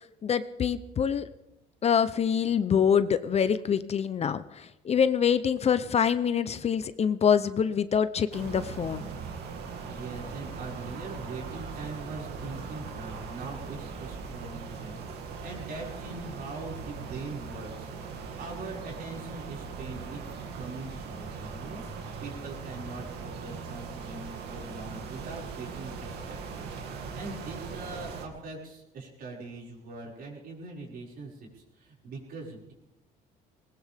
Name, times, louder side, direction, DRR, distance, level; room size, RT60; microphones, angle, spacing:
voice 1, 0.2-1.3 1.8-9.0, left 7 dB, 40° left, 13 dB, 0.7 m, -25 dB
sound 1, 8.3-28.3, right 5 dB, 75° right, 2.4 m, -40 dB
voice 2, 9.8-32.7, right 3 dB, 60° right, -2 dB, 5.8 m, -42 dB
20.0 x 20.0 x 3.6 m, 0.94 s
cardioid pair, 110°, 17 cm